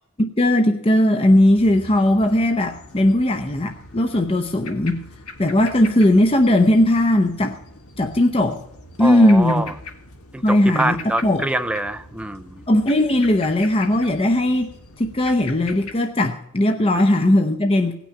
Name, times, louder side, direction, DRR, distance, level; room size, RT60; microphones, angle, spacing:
voice 1, 0.2-5.0 5.4-7.6 8.0-8.6 9.0-9.7 10.4-11.4 12.7-14.7 15.0-17.9, left 1 dB, 25° left, 5 dB, 0.7 m, -18 dB
sound 1, 1.3-15.9, left 3 dB, 90° left, 1.7 m, -41 dB
voice 2, 9.0-9.7 10.3-12.6, right 1 dB, 5° right, 8 dB, 0.4 m, -25 dB
17.5 x 6.1 x 9.8 m, 0.83 s
head